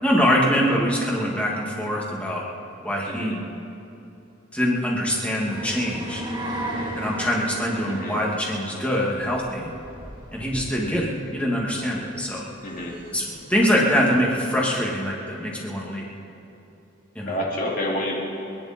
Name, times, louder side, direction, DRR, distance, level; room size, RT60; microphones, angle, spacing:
voice 1, 0.0-2.4 2.8-3.4 4.5-6.2 6.9-9.7 10.3-12.4 13.1-16.1 17.1-17.4, equal, 5° left, -4 dB, 2.5 m, -24 dB
sound 1, 5.5-13.6, right 1 dB, 20° right, 2.8 m, -36 dB
voice 2, 12.6-13.0 17.2-18.2, left 1 dB, 45° left, -3 dB, 2.9 m, -28 dB
29.5 x 10.5 x 4.5 m, 2.8 s
head